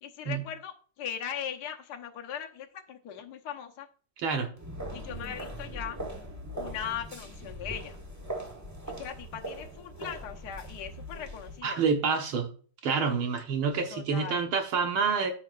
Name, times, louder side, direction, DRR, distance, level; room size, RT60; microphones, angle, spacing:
voice 1, 0.0-3.9 4.9-6.0 6.5-8.0 9.0-11.8 13.9-14.4, left 8 dB, 55° left, 3 dB, 1.5 m, -39 dB
voice 2, 4.2-4.5 11.6-12.5 12.8-15.3, right 5 dB, 75° right, 4 dB, 2.0 m, -27 dB
sound 1, 4.6-11.6, right 1 dB, 10° right, 1.1 m, -40 dB
13.5 x 5.6 x 2.5 m, 0.41 s
omnidirectional pair, 2.3 m